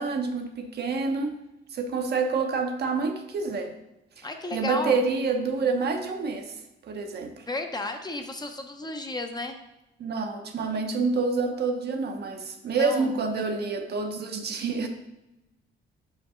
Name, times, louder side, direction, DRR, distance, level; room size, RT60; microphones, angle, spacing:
voice 1, 0.0-1.4 1.7-3.7 4.2-4.3 4.5-6.5 6.8-7.4 10.0-14.9, right 4 dB, 55° right, 5 dB, 0.9 m, -28 dB
voice 2, 4.2-5.0 7.5-9.6 12.7-13.4, left 2 dB, 20° left, 5 dB, 0.7 m, -33 dB
5.3 x 5.2 x 3.7 m, 0.96 s
cardioid pair, 90°, 20 cm